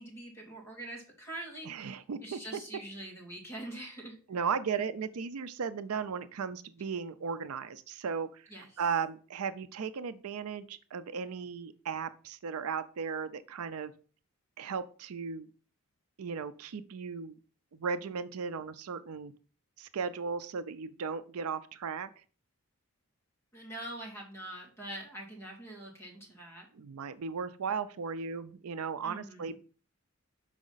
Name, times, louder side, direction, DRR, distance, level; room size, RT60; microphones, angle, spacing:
voice 1, 0.0-1.9 2.2-4.2 8.5-8.7 23.5-26.7 29.0-29.6, right 1 dB, 10° left, -2 dB, 2.2 m, -44 dB
voice 2, 1.6-2.6 4.3-8.5 8.8-13.9 14.6-15.5 16.2-17.4 17.7-19.3 19.8-22.1 26.7-29.6, right 6 dB, 85° right, 13 dB, 0.5 m, -36 dB
6.2 x 4.8 x 3.9 m, 0.39 s
head